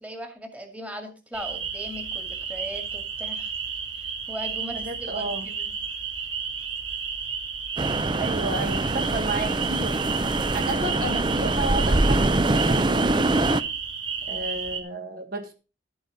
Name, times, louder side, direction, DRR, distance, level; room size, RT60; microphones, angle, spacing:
voice 1, 0.0-3.5 4.3-4.9 5.1-5.7, equal, 5° right, 5 dB, 2.0 m, -38 dB
sound 1, 1.3-14.8, right 6 dB, 80° right, 2.0 m, -32 dB
voice 2, 4.7-5.5 8.1-10.0 10.5-13.5 14.3-15.5, right 2 dB, 50° right, 5 dB, 1.5 m, -32 dB
Strong Wind Through Trees, 7.8-13.6, right 2 dB, 25° right, 0.5 m, -24 dB
12.0 x 8.7 x 4.0 m, 0.31 s
head